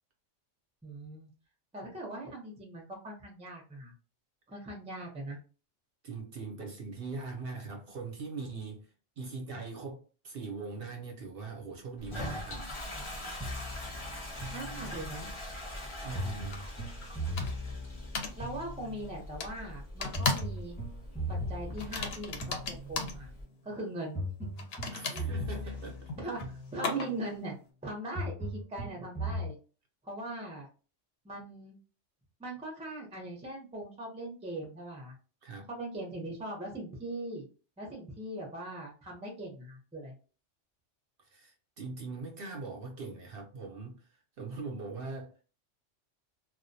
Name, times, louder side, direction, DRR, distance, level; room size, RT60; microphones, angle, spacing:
voice 1, 0.8-1.3 1.7-3.9 4.5-5.4 14.5-15.3 18.4-20.8 21.3-23.3 23.6-24.2 25.1-25.3 26.2-27.6 27.8-29.6 30.0-30.7 31.2-31.8 32.4-35.2 35.7-37.5 37.8-40.1, right 1 dB, 10° right, 0.3 m, -40 dB
voice 2, 6.0-12.7 16.0-16.7 24.9-26.1 35.4-35.7 41.2-45.4, right 4 dB, 60° right, 0.7 m, -41 dB
Toilet flush, 12.0-23.4, left 1 dB, 30° left, 0.6 m, -43 dB
sound 1, 13.4-15.3 16.1-19.2 20.1-23.2 24.1-27.2 28.1-29.5, equal, 10° left, 0.9 m, -39 dB
sound 2, 16.5-16.6 17.4-17.7 18.2-18.4 19.4-19.5 20.0-20.6 20.8-21.1 21.8-23.2 24.6-27.3, left 3 dB, 65° left, 0.7 m, -35 dB
2.3 x 2.1 x 2.6 m
omnidirectional pair, 1.2 m